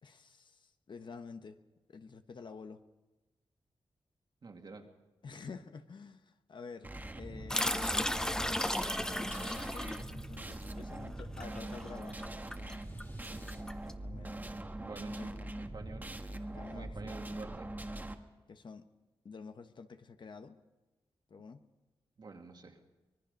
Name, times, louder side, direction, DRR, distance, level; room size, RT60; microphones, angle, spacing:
voice 1, 0.0-1.6 1.9-2.8 5.2-8.4 8.8-12.2 14.0-14.4 15.1-15.6 16.5-17.2 18.5-18.9 19.2-20.6 21.3-21.6, left 5 dB, 55° left, 8 dB, 1.1 m, -49 dB
voice 2, 4.4-4.9 14.4-14.5 14.8-16.1 16.7-17.7 22.2-22.8, right 3 dB, 50° right, 3 dB, 2.3 m, -48 dB
sound 1, 6.8-18.1, right 1 dB, 20° right, 1.4 m, -43 dB
sound 2, 7.5-13.9, left 1 dB, 5° left, 0.6 m, -35 dB
sound 3, 10.6-13.6, left 1 dB, 25° left, 2.9 m, -64 dB
24.5 x 20.0 x 5.3 m, 1.1 s
wide cardioid pair, 135°, 10 cm